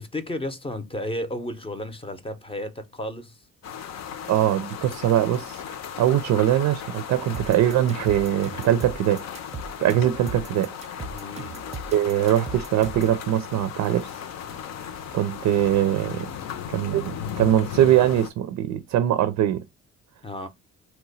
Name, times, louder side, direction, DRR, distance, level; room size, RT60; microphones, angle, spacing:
voice 1, 0.0-3.4 11.1-11.8 20.2-20.5, left 1 dB, 20° left, 0.6 m, -33 dB
sound 1, 3.6-18.3, left 8 dB, 60° left, 0.6 m, -36 dB
voice 2, 4.3-5.6 6.0-9.2 9.8-10.7 11.9-14.1 15.1-16.3 16.7-19.6, right 11 dB, 75° right, 0.5 m, -22 dB
sound 2, 7.3-13.2, right 4 dB, 20° right, 0.6 m, -38 dB
2.8 x 2.2 x 4.0 m
cardioid pair, 90°, 30 cm